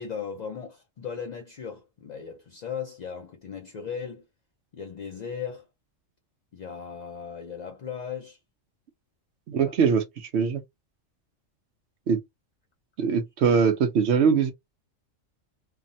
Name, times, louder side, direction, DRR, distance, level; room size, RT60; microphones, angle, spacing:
voice 1, 0.0-4.3 4.7-5.7 6.5-8.4 9.5-9.8, left 7 dB, 55° left, 0.5 m, -37 dB
voice 2, 9.5-10.6 12.1-12.2 13.0-14.5, right 6 dB, 65° right, 0.8 m, -22 dB
3.3 x 2.0 x 2.6 m
omnidirectional pair, 1.3 m